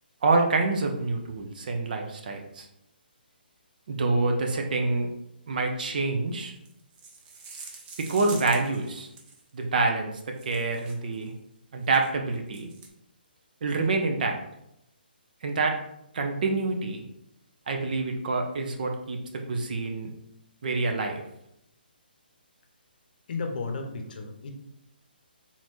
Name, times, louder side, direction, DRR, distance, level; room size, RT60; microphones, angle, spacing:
voice 1, 0.2-2.7 3.9-5.1 5.5-6.5 8.0-9.1 9.5-11.3 11.7-12.7 13.6-14.4 15.4-15.8 16.1-17.0 17.7-20.1 20.6-21.2, right 3 dB, 55° right, 3 dB, 0.8 m, -27 dB
sound 1, 6.6-9.5 10.3-11.2 11.8-12.1 12.5-12.9, right 4 dB, 15° right, 0.6 m, -45 dB
voice 2, 23.3-24.5, left 4 dB, 55° left, 4 dB, 0.8 m, -33 dB
4.2 x 3.7 x 3.1 m, 0.80 s
hypercardioid pair, 150°, 6 cm